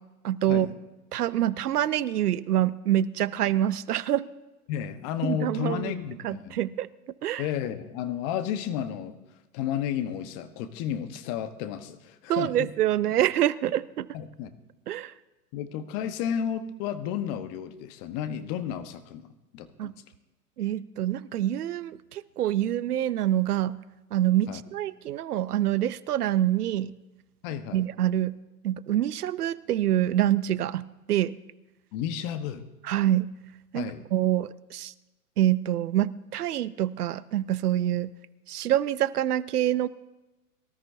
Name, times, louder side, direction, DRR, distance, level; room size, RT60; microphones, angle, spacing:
voice 1, 0.2-0.7 1.1-4.3 5.2-5.9 6.2-6.9 7.2-7.4 12.3-14.1 14.9-15.1 19.8-19.9 20.6-23.8 24.1-26.9 27.7-28.4 28.6-31.3 32.8-33.3 33.7-34.9 35.4-38.1 38.5-39.9, right 12 dB, 75° right, 18 dB, 0.7 m, -26 dB
voice 2, 4.7-6.6 7.4-9.1 9.5-12.7 14.1-14.5 15.5-19.9 24.5-24.6 27.4-27.9 31.9-32.6 33.7-34.1, left 9 dB, 40° left, 10 dB, 1.2 m, -32 dB
23.0 x 13.0 x 2.7 m, 1.1 s
hypercardioid pair, 115°, 46 cm